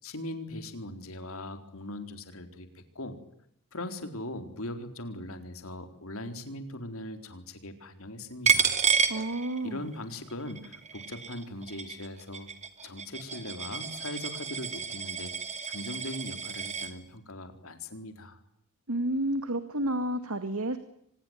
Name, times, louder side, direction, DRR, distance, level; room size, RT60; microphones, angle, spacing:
voice 1, 0.0-3.2 3.7-8.7 9.6-12.5 12.8-15.3 15.7-18.4, left 1 dB, 70° left, 7 dB, 4.2 m, -40 dB
Coin (dropping), 8.5-9.9 10.3-16.9, right 6 dB, 35° right, 2.6 m, -30 dB
voice 2, 9.1-9.9 18.9-20.8, right 1 dB, 75° right, 9 dB, 2.2 m, -30 dB
25.5 x 20.5 x 9.5 m, 0.73 s
head